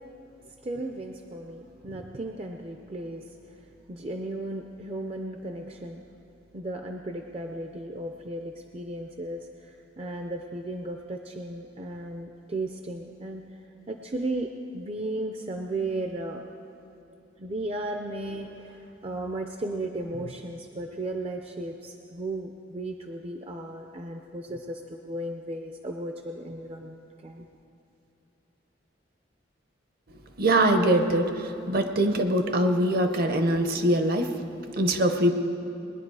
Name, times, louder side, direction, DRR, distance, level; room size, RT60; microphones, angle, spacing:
voice 1, 0.6-3.2 3.9-6.0 6.5-13.4 13.9-16.4 17.4-27.5, right 2 dB, 30° right, 4 dB, 0.6 m, -35 dB
voice 2, 30.4-31.3 31.7-34.3 34.8-35.3, right 1 dB, 55° right, 7 dB, 0.9 m, -22 dB
20.5 x 10.5 x 4.8 m, 2.9 s
head